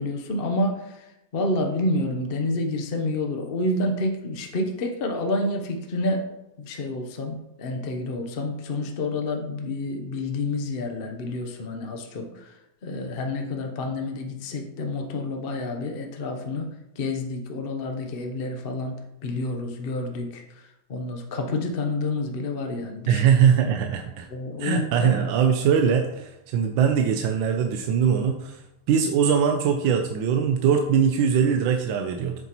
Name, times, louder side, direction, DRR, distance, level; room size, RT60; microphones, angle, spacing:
voice 1, 0.0-6.3 6.6-12.5 12.8-16.7 17.0-20.6 20.9-23.2 24.3-25.1, left 2 dB, 50° left, 3 dB, 0.7 m, -29 dB
voice 2, 23.1-24.3 24.6-28.6 28.9-32.4, right 7 dB, 80° right, 4 dB, 1.4 m, -21 dB
8.0 x 7.0 x 3.0 m, 0.90 s
omnidirectional pair, 2.1 m